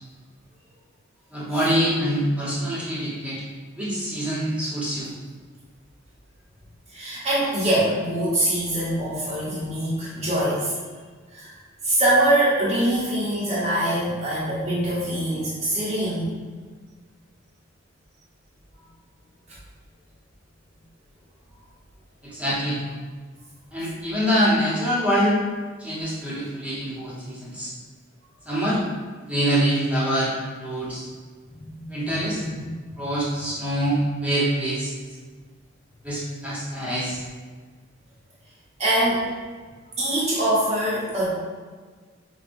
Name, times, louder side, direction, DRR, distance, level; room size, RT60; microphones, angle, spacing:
voice 1, 1.3-3.4 3.8-5.1 22.2-22.8 23.7-25.4 25.8-27.7 28.4-28.8 29.3-31.0 31.9-32.4 33.0-34.9 36.0-37.2, equal, 5° right, -8 dB, 0.9 m, -25 dB
voice 2, 6.9-10.8 11.3-16.3 31.6-32.7 38.8-39.3 40.0-41.3, right 1 dB, 35° right, -10 dB, 0.9 m, -24 dB
5.2 x 2.3 x 2.5 m, 1.5 s
head